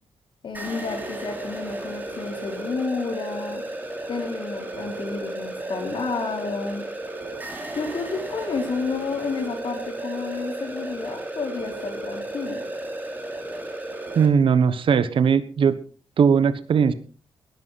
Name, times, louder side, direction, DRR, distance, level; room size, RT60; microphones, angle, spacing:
voice 1, 0.4-3.6 4.1-6.8 7.7-12.6, left 4 dB, 60° left, 2 dB, 4.2 m, -30 dB
sound 1, 0.5-14.3, right 1 dB, 20° right, 3.5 m, -34 dB
voice 2, 14.1-15.8 16.2-16.9, right 6 dB, 60° right, 14 dB, 1.2 m, -19 dB
19.5 x 11.0 x 4.2 m, 0.38 s
cardioid pair, 110°, 10 cm